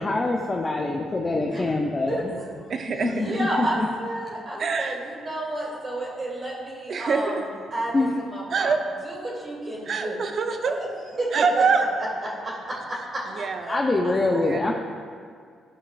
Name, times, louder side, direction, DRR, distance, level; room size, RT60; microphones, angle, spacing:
voice 1, 0.0-2.4 3.0-3.9 6.0-6.2 7.9-8.2 13.7-14.7, left 2 dB, 25° left, 0 dB, 0.5 m, -25 dB
voice 2, 2.1-2.4 3.2-7.4 7.7-8.8 9.0-10.2 10.8-10.9 11.2-11.3 12.2-13.2 14.0-14.5, right 1 dB, 35° right, -4 dB, 1.8 m, -31 dB
voice 3, 2.7-3.4 4.6-4.9 6.9-7.5 8.5-8.8 9.9-10.8 11.3-11.8 13.3-13.8 14.4-14.6, right 5 dB, 55° right, 6 dB, 0.6 m, -24 dB
11.0 x 5.4 x 2.4 m, 2.1 s
cardioid pair, 90°, 0 cm